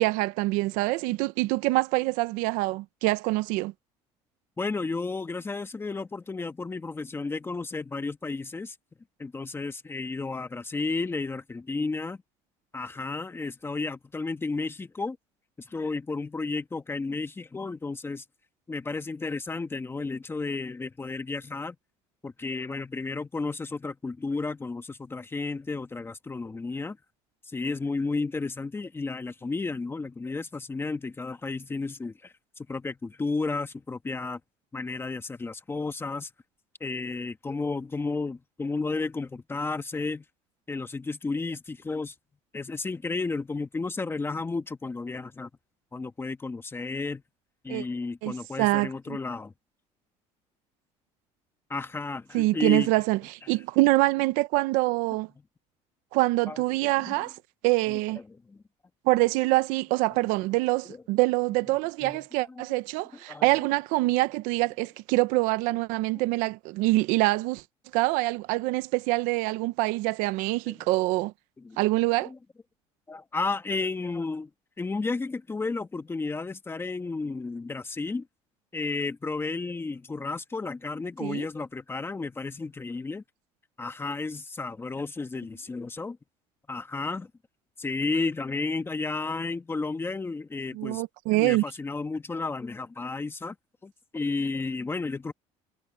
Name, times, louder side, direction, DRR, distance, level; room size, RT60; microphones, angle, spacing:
voice 1, 0.0-3.7 47.7-47.8 48.2-49.2 52.3-55.3 56.1-57.4 57.6-58.2 59.0-67.6 67.9-71.3 71.8-72.3 81.2-81.5 90.7-91.6, right 20 dB, 85° right, 0.8 m, -25 dB
voice 2, 4.6-8.8 9.2-12.2 12.7-15.2 15.6-18.2 18.7-21.8 22.2-27.0 27.5-32.3 32.7-34.4 34.7-36.3 36.8-40.2 40.7-42.1 42.5-45.5 45.9-47.2 47.6-49.5 51.7-52.9 56.5-56.6 57.1-57.2 57.9-58.0 58.3-58.6 62.0-62.2 62.6-62.7 63.3-63.4 70.7-70.9 71.6-71.8 72.2-72.4 73.1-74.5 74.8-78.3 78.7-83.2 83.8-86.2 86.7-87.3 87.8-91.0 91.3-93.5 93.8-95.3, left 3 dB, 15° left, 1.5 m, -32 dB
cardioid pair, 115°, 13 cm